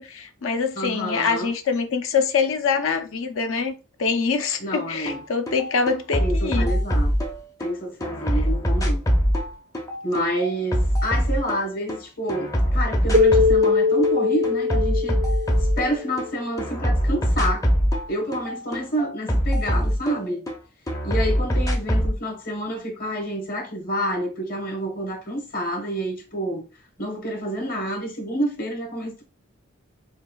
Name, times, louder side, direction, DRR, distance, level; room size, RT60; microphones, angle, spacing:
voice 1, 0.0-3.7 4.0-6.7, left 5 dB, 70° left, 0.5 m, -24 dB
voice 2, 0.7-1.5 4.6-5.2 6.2-7.1 7.6-9.0 10.0-15.2 15.8-17.7 18.1-20.4 21.0-26.7 27.0-29.2, right 1 dB, 40° left, 1.1 m, -28 dB
sound 1, 5.1-5.2 5.5-7.7 8.0-12.0 12.3-13.8 14.0-16.3 16.6-20.6 20.9-22.2, equal, 15° left, 0.5 m, -23 dB
Keyboard (musical), 13.1-16.3, left 4 dB, 35° right, 0.4 m, -21 dB
5.2 x 2.2 x 2.3 m
head